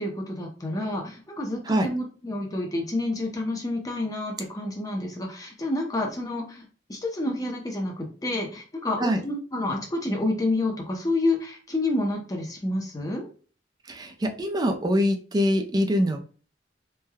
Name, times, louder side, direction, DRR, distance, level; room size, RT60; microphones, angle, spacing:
voice 1, 0.0-13.3, left 2 dB, 20° left, 1 dB, 0.7 m, -29 dB
voice 2, 13.9-16.2, equal, 25° right, 5 dB, 0.4 m, -24 dB
3.2 x 2.2 x 2.2 m, 0.39 s
head